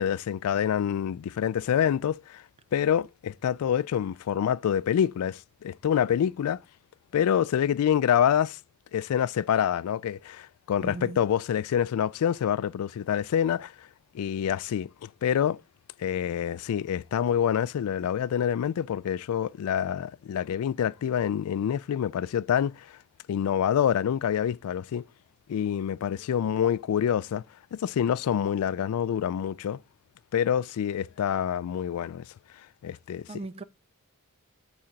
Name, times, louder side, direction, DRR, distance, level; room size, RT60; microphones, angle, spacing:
voice 1, 0.0-2.4 2.7-6.6 7.1-8.6 8.9-13.7 14.1-15.6 16.0-23.0 23.3-25.0 25.5-27.4 27.7-29.8 30.3-32.2 32.8-33.3, left 9 dB, 85° left, 0.3 m, -26 dB
voice 2, 10.8-11.2 33.3-33.6, right 2 dB, 25° right, 0.4 m, -38 dB
8.4 x 3.8 x 4.5 m
head